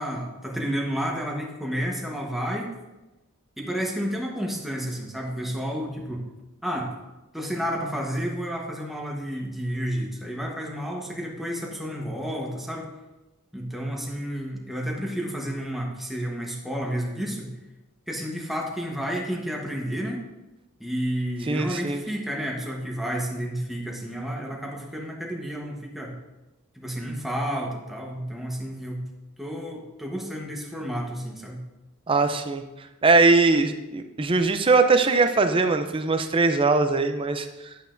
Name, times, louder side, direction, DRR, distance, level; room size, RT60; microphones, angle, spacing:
voice 1, 0.0-2.7 3.6-6.2 6.6-6.9 7.3-12.9 13.5-17.5 18.1-20.3 20.8-26.1 26.7-29.0 29.4-31.6, equal, ahead, -1 dB, 1.0 m, -31 dB
voice 2, 21.5-22.0 32.1-32.6 33.0-37.5, right 3 dB, 25° right, 8 dB, 0.5 m, -21 dB
9.1 x 8.0 x 2.6 m, 1.0 s
head